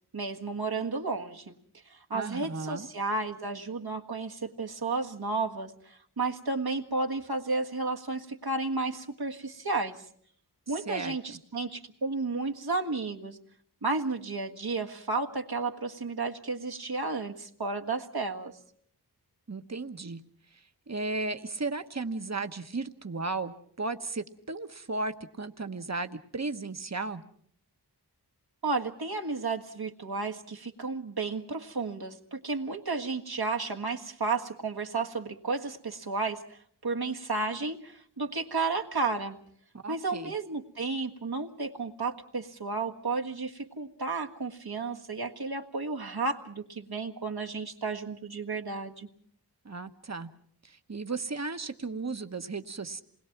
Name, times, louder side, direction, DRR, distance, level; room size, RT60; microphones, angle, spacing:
voice 1, 0.1-1.5 1.9-10.0 10.7-13.4 13.8-18.5 28.6-39.4 39.9-49.1, right 3 dB, 70° right, 3 dB, 1.7 m, -32 dB
voice 2, 2.1-2.9 10.9-11.4 19.5-20.2 20.5-27.2 39.7-40.3 49.6-50.3 50.6-53.0, right 3 dB, 40° right, 8 dB, 1.2 m, -35 dB
28.0 x 21.0 x 5.9 m, 0.63 s
wide cardioid pair, 55°, 39 cm